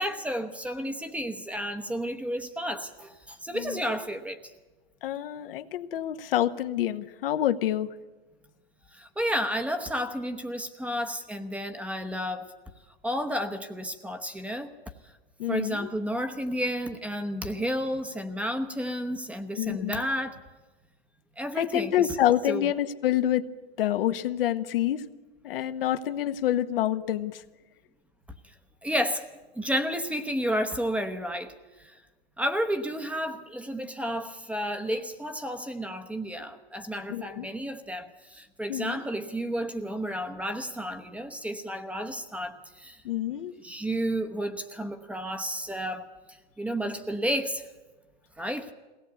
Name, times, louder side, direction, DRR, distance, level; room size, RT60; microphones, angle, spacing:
voice 1, 0.0-4.4 8.9-12.5 13.0-14.7 15.5-20.4 21.4-22.1 22.5-22.7 28.8-29.2 29.5-31.5 31.8-32.0 32.4-43.0 43.6-46.1 46.6-47.6 48.4-48.7, equal, 5° right, 7 dB, 1.0 m, -31 dB
voice 2, 5.0-7.9 15.4-15.9 19.5-20.1 21.6-23.5 23.8-25.0 25.4-27.4 37.1-37.5 38.7-39.0 43.0-43.5, left 12 dB, 65° left, 9 dB, 1.1 m, -27 dB
22.0 x 17.5 x 8.2 m, 1.2 s
hypercardioid pair, 130°, 31 cm